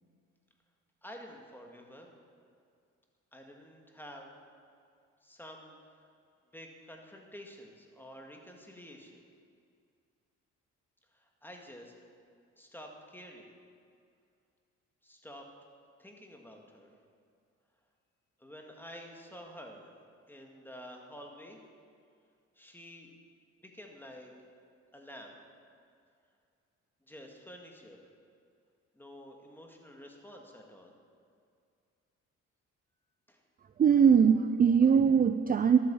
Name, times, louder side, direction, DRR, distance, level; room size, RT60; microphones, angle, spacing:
voice 1, 1.0-2.1 3.3-4.3 5.2-5.8 6.5-9.3 11.1-11.9 12.6-13.5 15.0-15.4 16.0-16.9 18.4-20.0 20.3-21.6 22.6-23.1 23.6-24.3 24.9-25.4 27.1-28.0 28.9-30.9 33.3-33.4, equal, 5° left, 1 dB, 2.0 m, -49 dB
voice 2, 33.8-35.8, right 7 dB, 30° right, 10 dB, 0.5 m, -21 dB
12.0 x 8.6 x 7.1 m, 2.3 s
cardioid pair, 90°, 30 cm